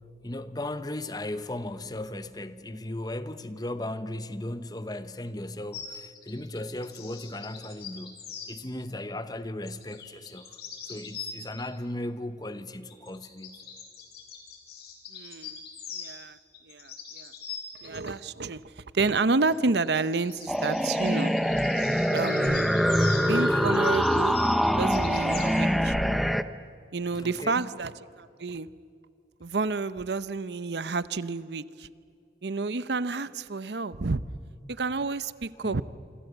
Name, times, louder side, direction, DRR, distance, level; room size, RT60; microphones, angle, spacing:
voice 1, 0.0-10.6 10.9-13.6 27.1-27.7 33.1-33.2 35.6-35.8, left 1 dB, 20° left, 1.0 m, -37 dB
sound 1, 5.7-8.5 9.7-11.6 12.9-16.2 16.5-18.1 19.4-25.6, left 6 dB, 65° left, 4.6 m, -42 dB
voice 2, 15.1-15.6 15.9-16.4 16.7-17.3 17.8-21.3 22.1-22.7 23.3-24.4 24.8-25.9 26.9-28.7 29.4-31.9 32.4-34.2 34.7-35.8, right 3 dB, 75° right, 0.8 m, -30 dB
sound 2, 20.5-26.4, equal, ahead, 0.6 m, -24 dB
27.5 x 26.0 x 8.0 m
head